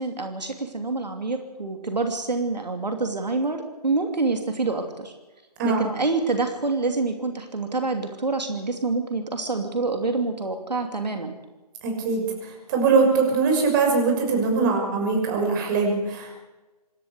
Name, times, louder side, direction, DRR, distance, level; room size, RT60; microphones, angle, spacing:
voice 1, 0.0-5.1 5.6-11.3, right 3 dB, 85° right, 5 dB, 2.9 m, -27 dB
voice 2, 11.8-16.4, right 4 dB, 30° right, 2 dB, 6.2 m, -22 dB
26.5 x 13.0 x 8.2 m, 1.2 s
figure-of-eight pair, 145°, 21 cm